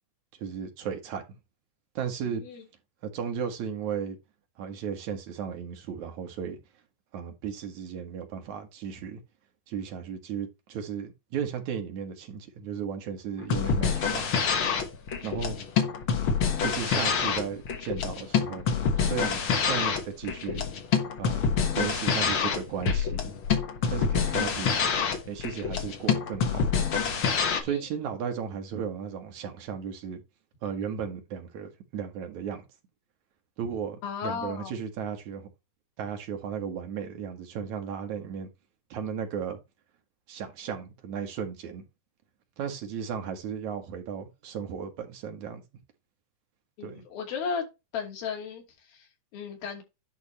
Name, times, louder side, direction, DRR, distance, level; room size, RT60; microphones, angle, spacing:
voice 1, 0.4-1.2 1.9-2.4 3.0-4.2 4.6-6.6 7.1-9.2 9.7-14.3 15.2-15.6 16.6-18.7 19.0-20.6 21.2-21.4 21.8-23.3 23.9-24.9 25.3-26.6 27.6-30.2 30.6-32.6 33.6-35.5 36.0-38.5 38.9-39.6 40.3-41.8 42.6-45.6 46.8-47.0, right 7 dB, 60° right, 2.8 m, -35 dB
voice 2, 2.3-2.6 27.7-27.8 34.0-34.7 46.8-47.7 47.9-49.8, left 6 dB, 80° left, 4.4 m, -35 dB
sound 1, 13.4-27.6, left 6 dB, 55° left, 1.6 m, -26 dB
11.0 x 3.8 x 4.2 m
omnidirectional pair, 4.2 m